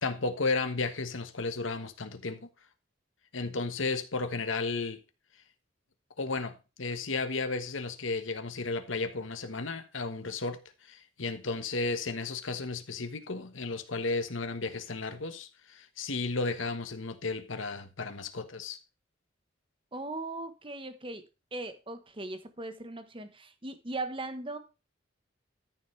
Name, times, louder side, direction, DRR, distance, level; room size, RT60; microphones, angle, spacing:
voice 1, 0.0-2.5 3.3-5.0 6.2-18.8, left 3 dB, 85° left, 1.3 m, -33 dB
voice 2, 19.9-21.2 21.5-24.6, right 2 dB, 25° right, 1.2 m, -39 dB
13.5 x 7.0 x 3.3 m
head